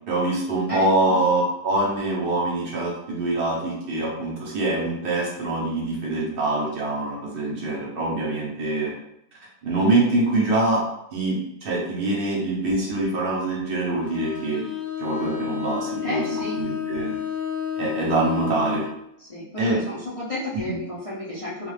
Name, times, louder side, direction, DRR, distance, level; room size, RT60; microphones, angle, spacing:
voice 1, 0.1-8.9 9.6-10.8 11.1-14.6 15.0-16.3 16.5-17.2 17.8-18.8 19.6-19.8 20.6-20.8, right 2 dB, 50° right, -3 dB, 0.8 m, -24 dB
voice 2, 0.7-1.2 16.0-16.5 19.3-21.7, left 1 dB, 50° left, -10 dB, 0.4 m, -32 dB
Bowed string instrument, 14.0-19.0, left 8 dB, 70° left, 1.0 m, -31 dB
2.3 x 2.3 x 3.2 m, 0.79 s
omnidirectional pair, 1.5 m